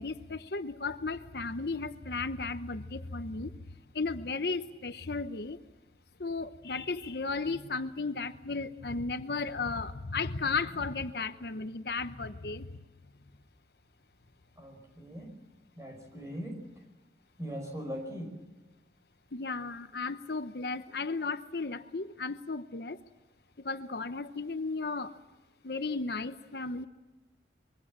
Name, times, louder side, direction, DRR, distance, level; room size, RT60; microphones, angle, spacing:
voice 1, 0.0-3.5 3.9-5.6 6.2-12.7 19.3-23.0 23.6-25.2 25.6-26.9, left 4 dB, 60° left, 10 dB, 0.9 m, -35 dB
voice 2, 14.6-15.4 15.8-16.6 17.4-18.4, equal, 20° right, 3 dB, 5.2 m, -40 dB
25.0 x 23.0 x 7.4 m, 1.1 s
head